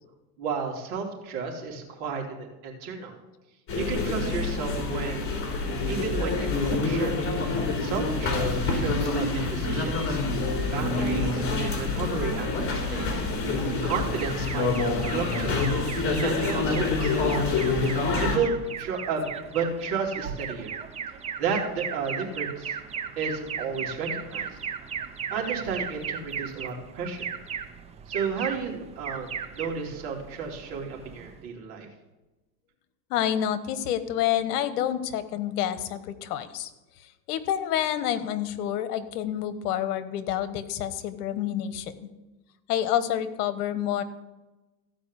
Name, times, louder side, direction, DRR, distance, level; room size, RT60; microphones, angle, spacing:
voice 1, 0.4-3.1 3.7-5.4 5.9-7.2 7.8-10.2 10.7-13.2 13.8-14.7 15.1-15.6 16.1-17.6 18.2-20.8 21.4-22.7 23.2-24.5 25.3-27.3 28.1-31.9, right 5 dB, 65° right, 0 dB, 3.3 m, -32 dB
sound 1, 3.7-18.4, left 3 dB, 25° left, 3.4 m, -27 dB
Alarm, 13.9-31.5, right 7 dB, 15° right, 0.4 m, -37 dB
voice 2, 33.1-36.7 37.3-41.9 42.7-44.0, left 11 dB, 65° left, 12 dB, 1.3 m, -28 dB
15.5 x 5.2 x 8.2 m, 1.1 s
supercardioid pair, 120°, 49 cm